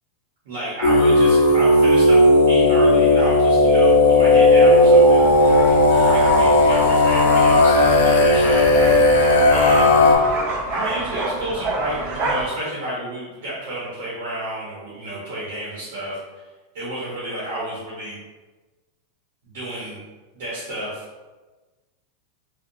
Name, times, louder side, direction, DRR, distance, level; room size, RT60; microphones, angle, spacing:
voice 1, 0.4-2.2 2.5-5.3 5.9-8.6 9.5-10.0 10.7-16.2 16.7-18.2 19.4-20.0 20.3-21.0, right 1 dB, 65° right, -8 dB, 0.8 m, -31 dB
sound 1, 0.8-10.2, left 1 dB, 80° left, 0.4 m, -14 dB
sound 2, 5.2-12.5, right 2 dB, 35° right, 0.4 m, -29 dB
2.7 x 2.1 x 2.5 m, 1.2 s
supercardioid pair, 175°, 0 cm